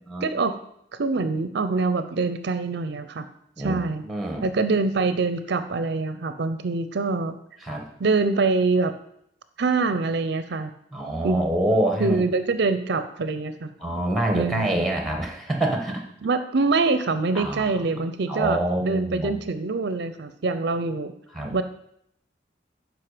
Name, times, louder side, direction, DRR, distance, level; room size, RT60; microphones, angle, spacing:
voice 1, 0.2-0.5 0.9-3.3 3.6-4.0 4.4-7.4 8.0-8.9 9.6-10.7 11.2-11.4 12.0-13.7 14.3-14.9 16.2-21.1 21.5-21.6, right 3 dB, 60° right, 10 dB, 0.5 m, -24 dB
voice 2, 3.6-4.4 7.6-7.8 10.9-12.2 13.8-16.0 17.3-17.8 18.3-19.3 21.3-21.5, right 1 dB, ahead, 2 dB, 1.3 m, -26 dB
12.0 x 5.0 x 5.0 m, 0.74 s
head